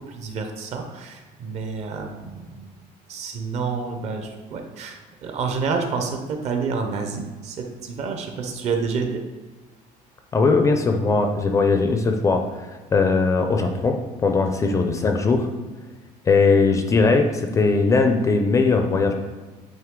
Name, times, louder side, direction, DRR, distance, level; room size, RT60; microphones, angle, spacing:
voice 1, 0.0-2.8 3.1-9.2, right 5 dB, 45° right, 4 dB, 0.7 m, -29 dB
voice 2, 10.3-12.4 12.9-15.5 16.3-19.1, left 4 dB, 20° left, 5 dB, 0.4 m, -19 dB
9.0 x 3.1 x 3.7 m, 1.3 s
cardioid pair, 175°, 15 cm